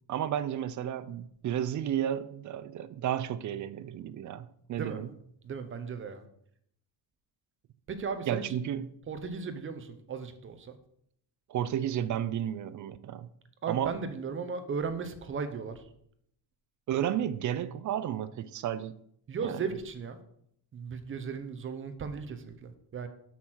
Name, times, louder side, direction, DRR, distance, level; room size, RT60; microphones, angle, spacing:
voice 1, 0.1-5.1 8.3-8.9 11.5-13.3 13.7-14.0 16.9-19.0 19.4-19.6, right 10 dB, 40° right, 0.4 m, -32 dB
voice 2, 5.4-6.2 7.9-8.4 9.1-10.8 13.6-15.9 19.3-20.2 20.7-23.1, right 5 dB, 25° right, 0.8 m, -36 dB
8.3 x 6.1 x 6.2 m
cardioid pair, 180°, 46 cm